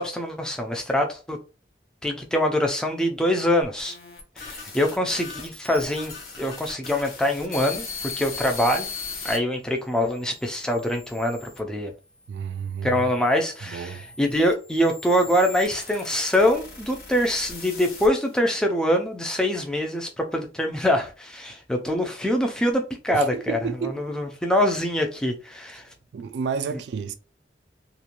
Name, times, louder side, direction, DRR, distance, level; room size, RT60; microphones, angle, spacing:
voice 1, 0.0-1.4 2.0-4.0 4.4-8.9 9.2-11.9 12.8-25.9, left 1 dB, 5° left, 0.3 m, -24 dB
sound 1, 3.6-9.4 10.0-11.6 12.4-18.4, left 4 dB, 55° left, 0.8 m, -39 dB
voice 2, 12.3-13.1 13.6-14.1 23.1-24.0 26.1-27.1, right 6 dB, 75° right, 0.3 m, -31 dB
2.5 x 2.2 x 2.9 m
head